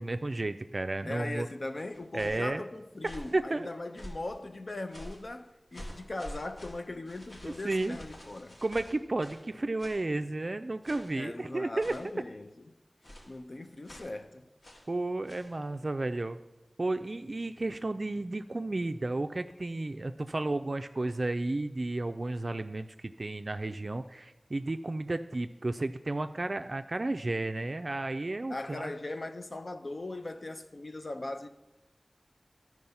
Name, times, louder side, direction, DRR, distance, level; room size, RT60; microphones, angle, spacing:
voice 1, 0.0-1.5 2.1-2.6 3.3-3.7 7.6-8.0 8.6-11.9 14.9-16.4 16.8-28.9, right 2 dB, 55° right, 0.3 m, -32 dB
voice 2, 1.1-8.6 11.2-12.7 13.3-14.5 28.5-31.5, left 2 dB, 65° left, 0.6 m, -39 dB
sound 1, 1.9-2.5 3.0-3.4 3.9-4.4 4.9-5.3 5.7-9.5 9.8-10.1 10.8-11.2 11.8-12.2 13.0-13.4 13.8-14.2 14.6-14.9 15.3-15.5, equal, 85° left, 1.9 m, -47 dB
12.0 x 4.7 x 5.5 m
wide cardioid pair, 60°, 0 cm